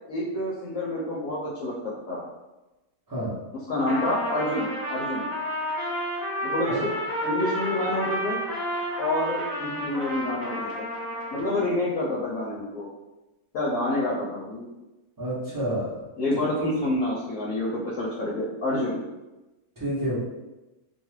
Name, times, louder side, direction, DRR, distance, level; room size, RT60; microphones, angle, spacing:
voice 1, 0.1-2.2 3.7-5.3 6.4-6.8 7.2-8.4 9.0-10.8 11.3-12.9 13.5-14.7 16.2-19.0, left 1 dB, 70° left, -6 dB, 0.9 m, -28 dB
voice 2, 3.1-3.4 6.7-6.8 15.2-16.0 16.4-16.8 19.8-20.2, right 1 dB, 20° right, -8 dB, 0.5 m, -30 dB
Trumpet, 3.8-11.7, equal, 25° left, 1.2 m, -31 dB
2.6 x 2.3 x 3.1 m, 1.1 s
omnidirectional pair, 1.6 m